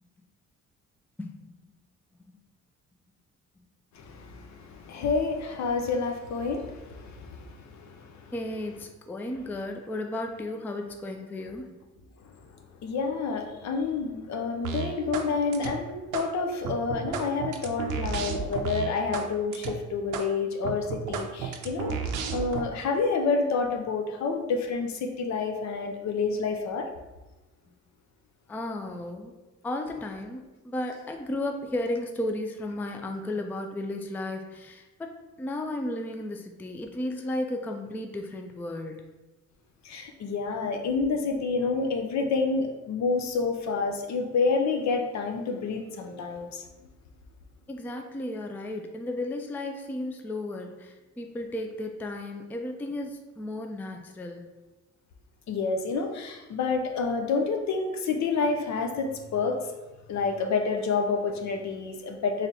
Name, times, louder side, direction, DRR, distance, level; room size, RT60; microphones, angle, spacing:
voice 1, 1.2-1.5 8.3-11.7 28.5-29.3 29.6-35.1 35.4-39.0 47.7-54.4, left 1 dB, 5° left, 4 dB, 0.3 m, -34 dB
voice 2, 3.9-8.3 12.8-22.0 22.3-26.9 39.8-46.6 55.5-59.6 60.1-62.5, left 4 dB, 65° left, 4 dB, 0.6 m, -29 dB
sound 1, 14.6-15.3 15.5-16.3 16.6-19.3 19.5-19.7 20.1-20.3 20.6-22.6, right 7 dB, 85° right, 0.5 m, -32 dB
3.9 x 3.3 x 2.6 m, 1.1 s
cardioid pair, 90°, 30 cm